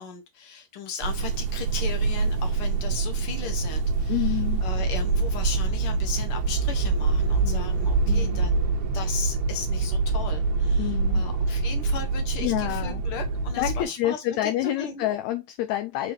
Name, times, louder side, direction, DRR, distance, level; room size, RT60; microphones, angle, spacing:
voice 1, 0.0-15.1, left 6 dB, 50° left, 2.0 m, -37 dB
sound 1, 1.0-13.8, right 4 dB, 70° right, 1.9 m, -25 dB
voice 2, 4.1-4.6 7.4-7.8 8.1-8.4 10.8-11.2 12.4-13.0 13.6-16.1, left 14 dB, 75° left, 1.8 m, -28 dB
8.2 x 3.8 x 3.1 m
omnidirectional pair, 3.6 m